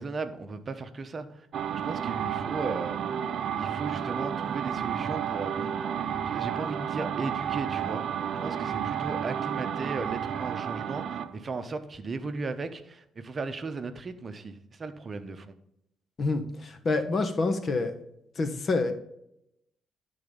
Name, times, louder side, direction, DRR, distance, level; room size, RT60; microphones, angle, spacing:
voice 1, 0.0-1.5 1.8-3.0 3.6-5.8 6.3-8.0 8.4-15.5, right 4 dB, 40° right, 9 dB, 0.8 m, -36 dB
sound 1, 1.5-11.3, right 8 dB, 65° right, 0.6 m, -31 dB
voice 2, 16.2-17.9 18.3-18.9, left 3 dB, 45° left, 7 dB, 1.1 m, -27 dB
12.0 x 3.9 x 5.1 m, 0.78 s
cardioid pair, 90°, 0 cm